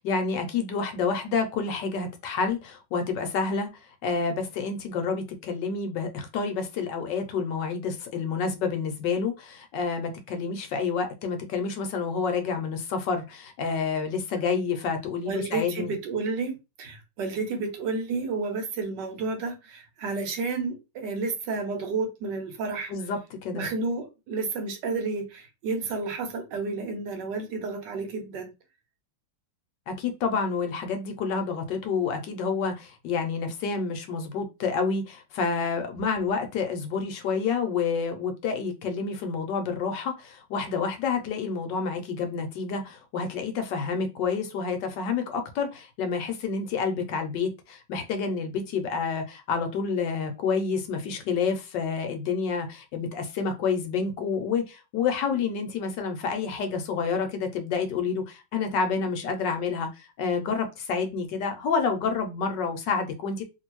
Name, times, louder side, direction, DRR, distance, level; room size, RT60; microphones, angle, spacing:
voice 1, 0.0-3.7 4.0-15.9 22.9-23.7 29.9-63.4, left 5 dB, 70° left, 1.2 m, -29 dB
voice 2, 15.2-22.9 23.5-28.5, right 3 dB, 70° right, 1.3 m, -31 dB
3.0 x 2.6 x 2.9 m
omnidirectional pair, 2.1 m